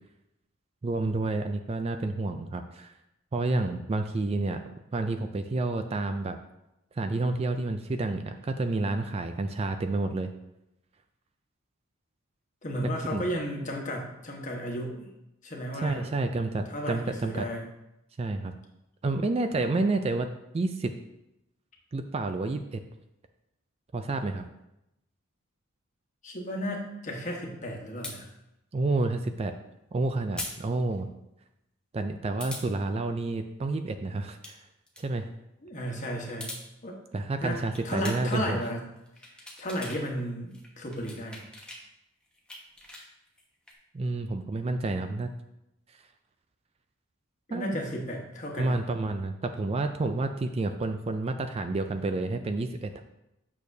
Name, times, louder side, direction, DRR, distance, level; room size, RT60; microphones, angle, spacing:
voice 1, 0.8-2.9 3.3-4.6 4.9-6.4 6.9-10.3 12.8-13.2 15.7-17.5 18.2-18.5 19.0-20.3 20.5-20.9 21.9-22.8 23.9-24.4 28.7-29.5 29.9-31.1 31.9-34.6 35.0-35.3 37.1-38.6 43.9-45.3 47.5-47.8 48.6-53.0, right 2 dB, 30° right, 7 dB, 0.3 m, -29 dB
voice 2, 12.6-15.1 15.4-16.1 16.7-17.7 26.2-28.3 35.6-36.5 36.8-37.0 37.4-38.8 39.6-41.4 47.5-48.8, equal, 35° left, 0 dB, 1.2 m, -34 dB
sound 1, 28.0-28.2 30.4-30.6 30.9-31.0 32.4-32.7 34.2-34.5 34.9-35.0 36.2-36.6 37.7-38.4 39.0-40.0 40.3-41.8 42.2-43.7, left 1 dB, 5° left, 1.0 m, -41 dB
8.4 x 6.6 x 2.7 m, 0.88 s
head